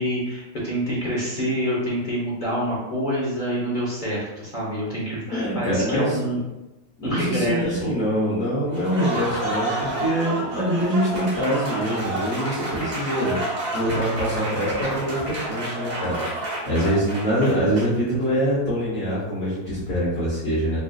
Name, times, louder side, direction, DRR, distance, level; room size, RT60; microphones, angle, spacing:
voice 1, 0.0-6.4 7.0-7.9, equal, 35° left, -6 dB, 1.0 m, -26 dB
voice 2, 5.2-6.2 7.0-13.4 13.7-20.8, equal, 65° left, -10 dB, 1.6 m, -24 dB
Applause, 8.7-18.1, right 1 dB, 30° right, 1.1 m, -30 dB
5.1 x 2.5 x 2.4 m, 1.0 s
omnidirectional pair, 1.6 m